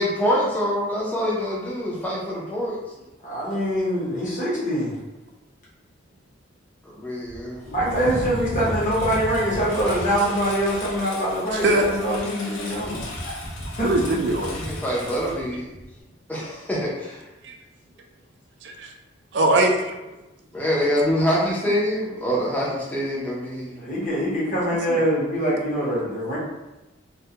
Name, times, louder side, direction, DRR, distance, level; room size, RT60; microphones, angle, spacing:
voice 1, 0.0-2.8 6.8-7.7 14.5-15.7 16.3-17.2 20.5-23.8, equal, 10° left, -6 dB, 0.5 m, -25 dB
voice 2, 3.2-5.0 7.7-13.1 13.8-14.0 23.7-26.4, equal, 40° left, -7 dB, 0.8 m, -24 dB
Engine, 7.3-16.0, equal, 80° left, 0.6 m, -34 dB
voice 3, 13.8-14.6 17.4-17.5 18.6-18.9 19.3-19.9 24.9-25.0, right 2 dB, 60° right, 3 dB, 0.3 m, -21 dB
2.2 x 2.1 x 2.7 m, 1.0 s
head